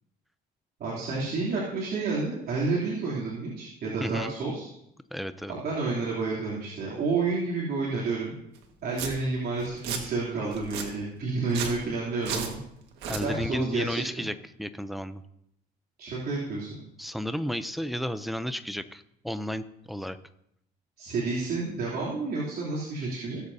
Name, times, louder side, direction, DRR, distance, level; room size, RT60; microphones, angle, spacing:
voice 1, 0.8-4.7 5.5-8.3 8.8-12.6 13.1-14.0 16.0-16.8 21.0-23.4, right 3 dB, 60° right, -6 dB, 3.1 m, -30 dB
voice 2, 4.0-4.3 5.1-5.5 13.1-15.2 17.0-20.2, equal, ahead, 11 dB, 0.6 m, -33 dB
Domestic sounds home sounds, 8.5-8.6 8.9-9.1 9.6-10.0 10.5-10.9 11.4-11.8 12.2-12.5 12.9-13.2, right 6 dB, 85° right, 1.7 m, -33 dB
18.0 x 7.9 x 2.8 m, 0.75 s
cardioid pair, 110°, 17 cm